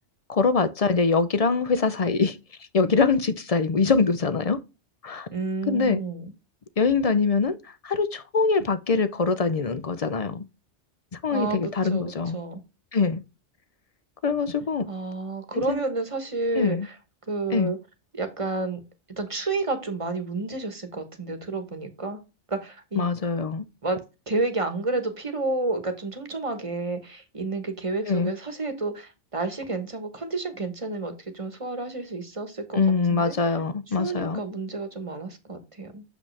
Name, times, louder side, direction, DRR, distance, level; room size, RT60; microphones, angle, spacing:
voice 1, 0.3-2.4 2.7-4.6 5.0-5.3 5.7-6.0 6.8-10.4 11.1-12.4 12.9-13.2 14.2-14.9 15.7-15.8 16.6-16.9 17.5-17.7 23.0-23.7 28.1-28.3 32.7-34.4, left 4 dB, 45° left, 0.5 m, -23 dB
voice 2, 5.3-6.3 11.3-12.6 14.9-16.9 17.3-17.8 18.1-18.8 19.2-22.2 22.5-23.1 23.8-24.0 24.3-32.8 33.1-33.3 34.0-36.0, right 3 dB, 30° right, 1.2 m, -30 dB
7.1 x 5.0 x 3.2 m
omnidirectional pair, 1.2 m